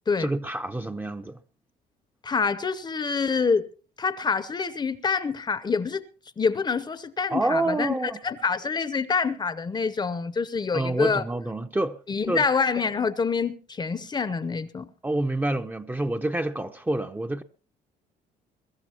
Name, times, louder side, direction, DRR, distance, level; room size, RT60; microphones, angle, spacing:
voice 1, 0.2-1.4 7.3-8.2 10.7-12.0 12.3-12.4 15.0-17.4, right 2 dB, 10° right, 0.7 m, -27 dB
voice 2, 2.2-3.7 4.0-6.0 6.4-11.2 12.1-14.9, left 5 dB, 25° left, 0.8 m, -26 dB
22.5 x 13.0 x 2.9 m
cardioid pair, 110°, 17 cm